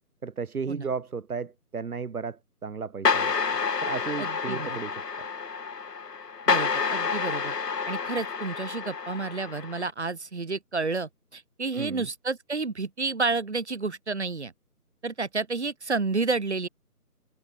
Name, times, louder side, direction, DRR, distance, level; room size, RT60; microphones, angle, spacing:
voice 1, 0.2-3.3 3.8-5.0 11.7-12.1, right 5 dB, 65° right, 1.3 m, -34 dB
sound 1, 3.0-9.9, left 5 dB, 85° left, 1.3 m, -29 dB
voice 2, 4.2-4.8 6.5-7.5 7.9-14.5 15.0-16.7, right 4 dB, 45° right, 0.7 m, -30 dB
figure-of-eight pair, 170°, 47 cm